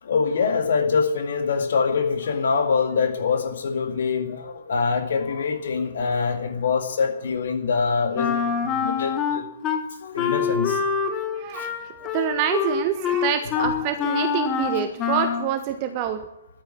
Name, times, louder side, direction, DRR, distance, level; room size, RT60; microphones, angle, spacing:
voice 1, 0.0-9.5 10.0-10.8 11.5-11.7 13.4-13.7 14.6-14.7, left 5 dB, 60° left, 6 dB, 2.1 m, -24 dB
Wind instrument woodwind instrument, 8.1-9.8 10.2-15.5, left 7 dB, 25° left, 1.7 m, -25 dB
voice 2, 11.3-11.7 12.1-16.2, right 10 dB, 35° right, 9 dB, 1.2 m, -26 dB
13.0 x 9.6 x 9.8 m, 0.83 s
figure-of-eight pair, 120°, 0 cm